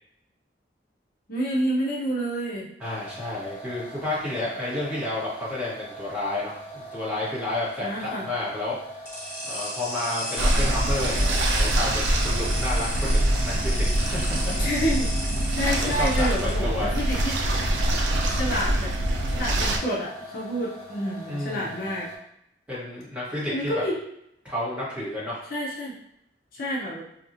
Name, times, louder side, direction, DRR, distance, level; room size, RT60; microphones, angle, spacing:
voice 1, 1.3-2.7 7.8-8.3 14.6-15.1 15.6-17.4 18.3-18.9 19.3-22.1 23.5-24.0 25.5-25.9 26.5-27.0, equal, 50° left, -4 dB, 0.6 m, -28 dB
sound 1, 2.8-22.2, right 1 dB, 30° left, 1.2 m, -42 dB
voice 2, 2.8-8.8 9.4-14.5 15.8-17.0 21.3-21.9 22.7-23.8 24.4-25.4, left 1 dB, 5° right, -10 dB, 1.2 m, -31 dB
sound 2, 9.1-16.5, equal, 15° left, 1.5 m, -34 dB
sound 3, 10.4-19.8, right 1 dB, 85° right, 0.5 m, -24 dB
4.3 x 2.4 x 2.6 m, 0.78 s
head